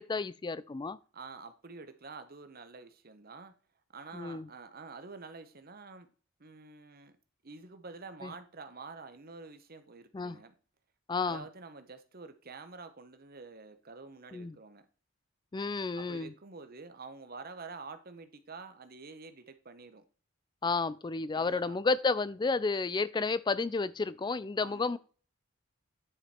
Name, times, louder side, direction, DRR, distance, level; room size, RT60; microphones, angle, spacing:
voice 1, 0.0-1.0 4.1-4.5 8.2-8.3 10.1-10.4 11.1-11.4 14.3-14.5 15.5-16.3 20.6-25.0, left 4 dB, 20° left, 0.3 m, -31 dB
voice 2, 1.1-3.5 3.9-6.1 6.4-7.2 7.4-10.5 11.2-14.8 15.9-20.0 21.3-21.8 24.6-25.0, right 4 dB, 45° right, 1.0 m, -48 dB
10.0 x 5.1 x 4.3 m
head